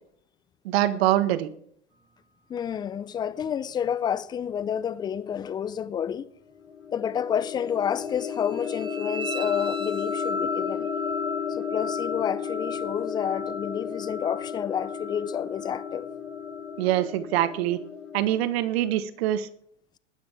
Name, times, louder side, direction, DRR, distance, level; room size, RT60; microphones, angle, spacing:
voice 1, 0.6-1.5 16.8-17.8 18.1-19.5, right 13 dB, 55° right, 1.4 m, -24 dB
voice 2, 2.5-6.3 6.9-10.9 11.5-16.1, left 8 dB, 10° left, 0.4 m, -29 dB
sound 1, 6.5-18.4, left 7 dB, 80° left, 3.6 m, -34 dB
sound 2, 8.0-16.9, left 2 dB, 15° right, 1.8 m, -37 dB
20.5 x 9.7 x 3.5 m
hypercardioid pair, 105°, 37 cm